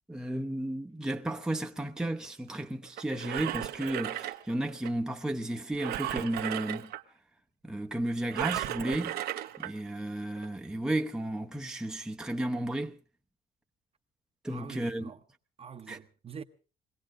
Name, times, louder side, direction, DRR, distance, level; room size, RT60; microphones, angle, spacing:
voice 1, 0.1-6.9 7.6-9.2 9.6-13.0 14.4-15.1 15.9-16.0, right 1 dB, 5° right, 0.8 m, -33 dB
Engine, 3.0-4.9 5.8-7.0 8.3-9.7 10.4-10.5, right 13 dB, 70° right, 0.9 m, -35 dB
voice 2, 14.5-15.2 15.6-16.4, right 6 dB, 35° right, 0.9 m, -45 dB
22.0 x 17.0 x 3.7 m
cardioid pair, 110°, 17 cm